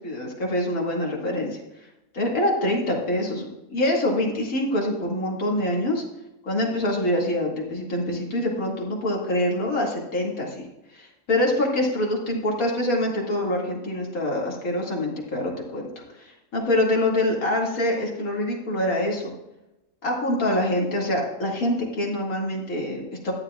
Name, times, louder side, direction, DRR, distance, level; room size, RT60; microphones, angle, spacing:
voice 1, 0.0-1.6 2.1-6.0 6.5-10.7 10.9-15.9 16.2-19.3 20.0-23.3, left 1 dB, 85° left, -2 dB, 2.7 m, -25 dB
14.0 x 10.0 x 2.4 m, 0.97 s
omnidirectional pair, 1.5 m